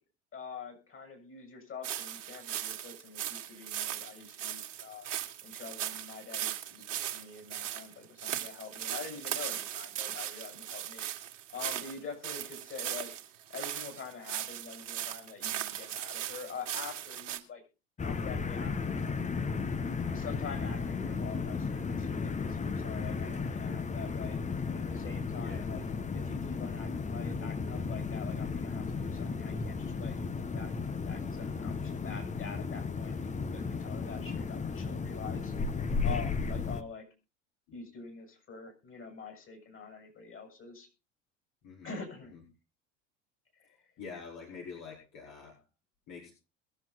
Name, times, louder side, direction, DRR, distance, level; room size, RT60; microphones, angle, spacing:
voice 1, 0.3-5.1 5.4-11.0 11.5-13.1 13.5-17.6 18.0-19.2 20.1-24.4 24.7-25.8 26.1-35.5 36.0-37.0 37.7-40.9 41.8-42.4 43.6-43.8, left 5 dB, 35° left, 3 dB, 7.2 m, -45 dB
sound 1, 1.8-17.4, right 11 dB, 75° right, 2.0 m, -38 dB
sound 2, 18.0-36.8, left 4 dB, 20° left, 1.2 m, -34 dB
voice 2, 25.3-25.7 41.6-42.0 42.3-42.4 44.0-45.6 46.1-46.3, left 5 dB, 55° left, -2 dB, 4.8 m, -46 dB
21.5 x 7.4 x 4.1 m, 0.31 s
hypercardioid pair, 75°, 37 cm